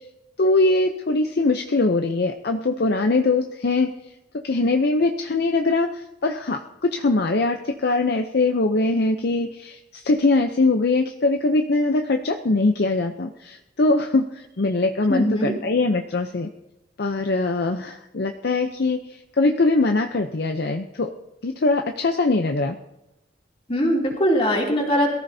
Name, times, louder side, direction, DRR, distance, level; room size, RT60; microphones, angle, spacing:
voice 1, 0.4-3.9 4.3-16.5 17.0-19.0 19.4-21.1 21.4-22.8, left 3 dB, 55° left, 5 dB, 0.6 m, -22 dB
voice 2, 15.1-15.5 23.7-25.1, equal, 30° left, -2 dB, 2.9 m, -21 dB
21.5 x 14.0 x 2.7 m, 0.94 s
head